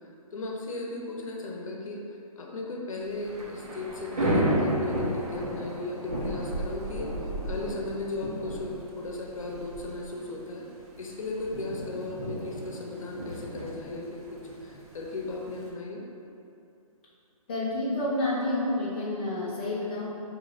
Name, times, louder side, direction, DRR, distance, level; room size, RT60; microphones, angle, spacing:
voice 1, 0.3-2.0 2.4-7.1 7.4-10.7 11.0-16.0, left 2 dB, 60° left, -1 dB, 0.7 m, -36 dB
Thunder / Rain, 3.0-15.7, right 1 dB, 85° right, 1.0 m, -33 dB
voice 2, 17.5-20.0, left 2 dB, 15° left, -9 dB, 0.4 m, -29 dB
5.3 x 2.8 x 2.5 m, 2.7 s
hypercardioid pair, 165°, 19 cm